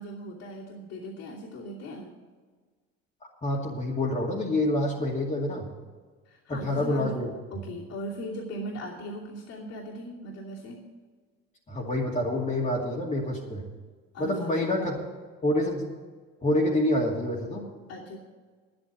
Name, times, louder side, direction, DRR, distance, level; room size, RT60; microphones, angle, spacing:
voice 1, 0.0-2.1 6.3-7.2 7.5-10.8 14.1-14.6 17.9-18.2, equal, 60° left, -5 dB, 2.8 m, -39 dB
voice 2, 3.4-5.7 6.5-7.3 11.7-13.6 14.2-15.0 15.4-15.8 16.4-17.7, left 1 dB, 25° left, -4 dB, 2.3 m, -27 dB
9.9 x 9.0 x 8.2 m, 1.4 s
supercardioid pair, 80°, 30 cm